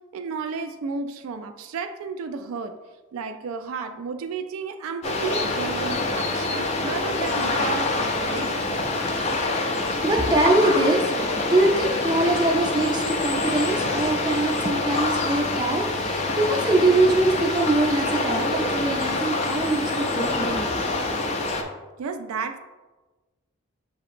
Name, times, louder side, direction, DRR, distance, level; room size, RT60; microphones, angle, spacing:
voice 1, 0.1-2.8 3.1-8.7 22.0-22.6, right 5 dB, 80° right, 7 dB, 0.3 m, -32 dB
sound 1, 5.0-21.6, left 2 dB, 30° left, 0.3 m, -26 dB
voice 2, 10.0-20.7, right 2 dB, 20° right, 0 dB, 0.5 m, -23 dB
6.5 x 2.8 x 2.5 m, 1.2 s
head